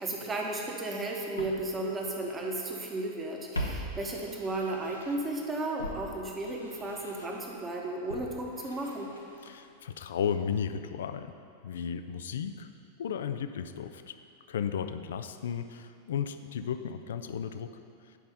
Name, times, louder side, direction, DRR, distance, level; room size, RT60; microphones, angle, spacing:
voice 1, 0.0-9.1, right 2 dB, 20° right, 0 dB, 1.2 m, -34 dB
Walk footsteps, 1.4-2.9 3.1-5.4 5.8-9.8 10.1-10.2, equal, 75° left, 0.8 m, -42 dB
voice 2, 9.4-11.3 11.6-12.7 13.0-14.2 14.5-17.7, left 7 dB, 60° left, 10 dB, 0.4 m, -34 dB
9.2 x 5.4 x 5.2 m, 2.5 s
figure-of-eight pair, 90°, 0 cm